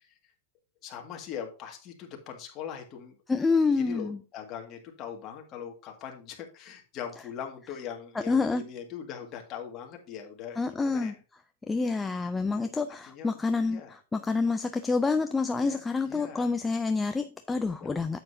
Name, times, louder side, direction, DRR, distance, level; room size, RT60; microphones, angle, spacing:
voice 1, 0.8-3.2 3.7-11.1 12.5-12.7 13.1-13.4 13.7-14.0 15.5-16.5 17.8-17.9, left 8 dB, 30° left, 1.8 m, -41 dB
voice 2, 3.3-4.2 8.3-8.6 10.6-11.2 11.7-18.2, left 4 dB, 10° left, 0.4 m, -27 dB
9.2 x 7.7 x 2.7 m
supercardioid pair, 160°, 0 cm